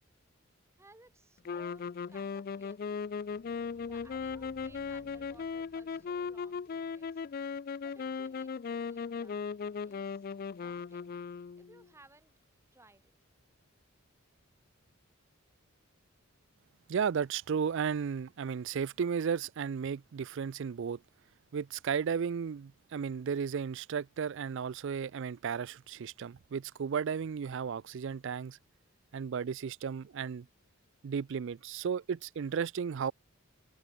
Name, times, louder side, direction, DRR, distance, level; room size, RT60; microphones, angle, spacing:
voice 1, 0.8-3.1 3.8-7.5 7.8-9.5 9.9-10.3 10.5-11.1 11.6-12.3 12.7-13.1, right 2 dB, 10° right, 2.3 m, -61 dB
sound 1, 1.4-11.9, left 5 dB, 40° left, 0.3 m, -38 dB
sound 2, 3.0-8.0, right 1 dB, 75° right, 3.1 m, -61 dB
sound 3, 3.7-5.8, right 1 dB, 35° right, 4.2 m, -74 dB
voice 2, 16.9-21.0 21.5-28.6 29.1-30.5 31.0-33.1, right 6 dB, 55° right, 0.3 m, -34 dB
head